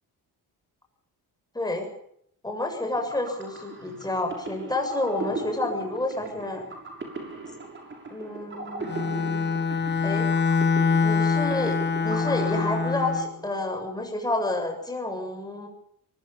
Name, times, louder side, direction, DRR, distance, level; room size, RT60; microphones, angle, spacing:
voice 1, 1.5-1.9 2.4-6.7 8.1-9.6 10.0-10.3 11.0-11.8 12.0-15.7, left 2 dB, 10° left, 3 dB, 7.3 m, -29 dB
sound 1, 2.8-13.6, right 3 dB, 30° right, 6.8 m, -38 dB
Bowed string instrument, 8.8-13.3, left 5 dB, 30° left, 1.4 m, -24 dB
23.5 x 23.5 x 5.7 m, 0.70 s
cardioid pair, 150°, 38 cm